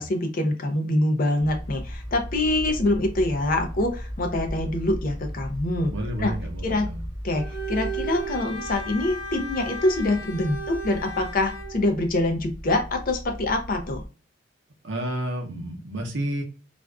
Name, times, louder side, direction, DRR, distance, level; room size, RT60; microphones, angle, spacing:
voice 1, 0.0-5.9 6.2-6.3 6.6-6.9 7.2-14.0, left 2 dB, 45° left, 4 dB, 0.5 m, -25 dB
sound 1, 1.4-14.1, equal, 25° right, 0.8 m, -37 dB
voice 2, 5.9-7.1 14.8-16.4, right 1 dB, 70° right, 2 dB, 0.7 m, -30 dB
Bowed string instrument, 7.3-11.8, right 3 dB, 70° left, 0.9 m, -35 dB
2.4 x 2.3 x 2.2 m, 0.33 s
head